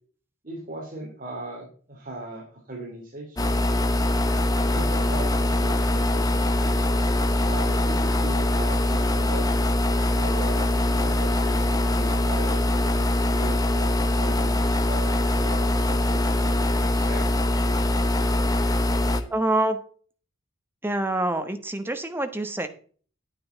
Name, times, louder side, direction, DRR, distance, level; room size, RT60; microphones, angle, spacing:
voice 1, 0.4-3.5 4.7-6.8 7.4-9.5 10.1-13.0 13.3-17.3, right 2 dB, 40° right, -2 dB, 3.1 m, -38 dB
sound 1, 3.4-19.2, left 1 dB, 20° left, 1.0 m, -23 dB
voice 2, 19.3-19.8 20.8-22.7, right 1 dB, 10° right, 7 dB, 1.2 m, -26 dB
9.7 x 9.3 x 4.0 m, 0.43 s
head